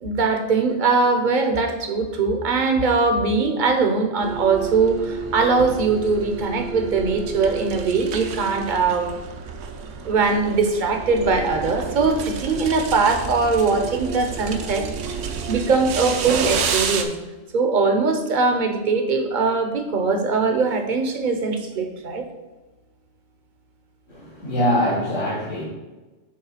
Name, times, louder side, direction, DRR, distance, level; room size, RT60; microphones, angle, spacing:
voice 1, 0.0-9.2 10.0-14.9 15.5-17.1 17.5-22.3, right 4 dB, 45° right, 5 dB, 0.8 m, -21 dB
sound 1, 4.2-17.0, right 5 dB, 70° right, 1.0 m, -30 dB
voice 2, 24.1-25.6, equal, 75° left, -8 dB, 2.4 m, -23 dB
7.8 x 3.3 x 5.6 m, 1.2 s
omnidirectional pair, 1.3 m